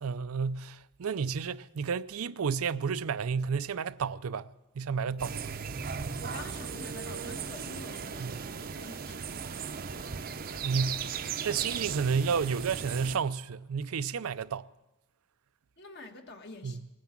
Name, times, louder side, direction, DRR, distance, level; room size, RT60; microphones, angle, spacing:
voice 1, 0.0-5.5 8.2-8.5 10.6-11.1 11.4-14.7 16.6-16.8, right 6 dB, 85° right, 0.5 m, -31 dB
sound 1, 5.2-13.2, right 6 dB, 45° right, 0.6 m, -37 dB
voice 2, 6.2-9.5 15.8-16.8, left 2 dB, 50° left, 1.4 m, -47 dB
19.5 x 9.5 x 7.4 m
head